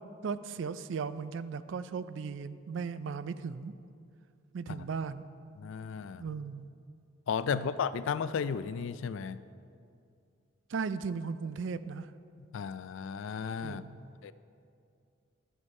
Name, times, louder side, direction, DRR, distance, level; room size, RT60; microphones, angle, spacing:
voice 1, 0.2-3.8 4.5-5.2 6.2-6.7 7.5-7.7 10.7-12.1 13.6-14.1, right 5 dB, 70° right, 14 dB, 0.4 m, -37 dB
voice 2, 5.6-6.2 7.3-9.4 12.5-13.8 14.2-14.3, left 6 dB, 75° left, 15 dB, 0.3 m, -34 dB
11.0 x 6.4 x 5.3 m, 2.4 s
head